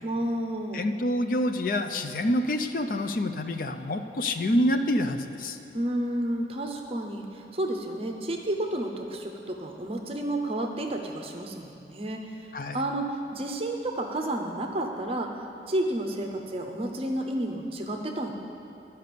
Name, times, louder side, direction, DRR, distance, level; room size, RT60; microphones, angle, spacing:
voice 1, 0.0-0.9 5.7-12.5 12.7-15.4 15.7-18.3, right 1 dB, 35° right, 3 dB, 0.7 m, -31 dB
voice 2, 0.7-5.6 12.5-12.8, left 1 dB, 50° left, 7 dB, 0.5 m, -27 dB
12.0 x 5.4 x 6.8 m, 2.7 s
head